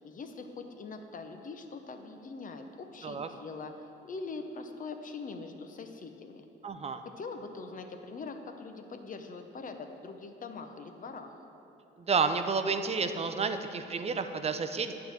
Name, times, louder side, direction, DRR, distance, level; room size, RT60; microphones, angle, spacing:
voice 1, 0.0-6.5 7.0-11.4, left 4 dB, 40° left, 6 dB, 0.7 m, -43 dB
voice 2, 6.6-7.0 12.0-14.9, right 5 dB, 30° right, 8 dB, 0.5 m, -30 dB
9.5 x 3.8 x 7.1 m, 2.9 s
cardioid pair, 90°, 20 cm